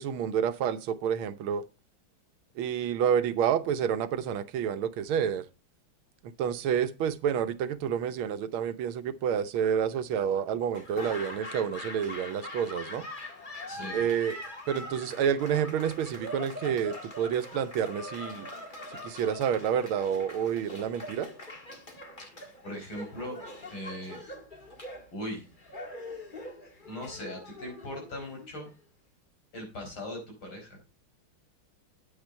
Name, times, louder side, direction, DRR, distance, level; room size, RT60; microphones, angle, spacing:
voice 1, 0.0-1.6 2.6-5.5 6.2-13.1 13.9-14.4 14.7-18.5 19.0-21.3, right 8 dB, 80° right, 1.7 m, -29 dB
Laughter / Applause, 10.7-28.8, left 1 dB, 25° left, 1.8 m, -43 dB
voice 2, 13.7-14.0 22.4-23.4 23.7-24.2 25.1-25.4 26.9-28.7 29.5-30.8, left 1 dB, 75° left, 5.6 m, -39 dB
8.9 x 8.8 x 4.4 m
omnidirectional pair, 2.3 m